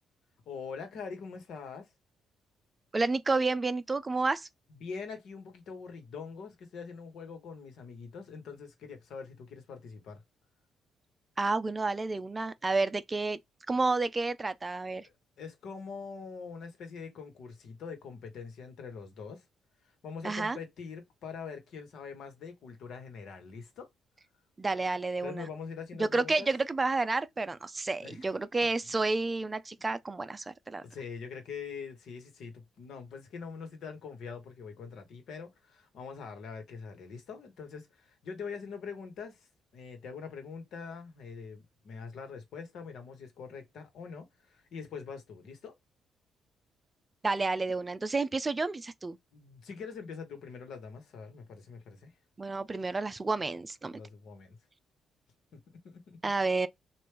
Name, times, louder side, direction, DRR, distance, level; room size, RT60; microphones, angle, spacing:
voice 1, 0.5-1.9 4.8-10.2 15.0-15.1 15.4-19.4 20.0-23.9 25.2-26.5 28.0-28.2 30.8-39.5 39.7-45.7 49.3-52.1 53.9-54.6 55.5-56.2, left 5 dB, 75° left, 1.3 m, -43 dB
voice 2, 2.9-4.5 11.4-13.4 13.7-15.1 20.2-20.6 24.6-25.5 26.0-30.8 47.2-49.2 52.4-54.0 56.2-56.7, right 3 dB, 25° right, 0.4 m, -30 dB
3.2 x 2.6 x 3.2 m
cardioid pair, 90°, 0 cm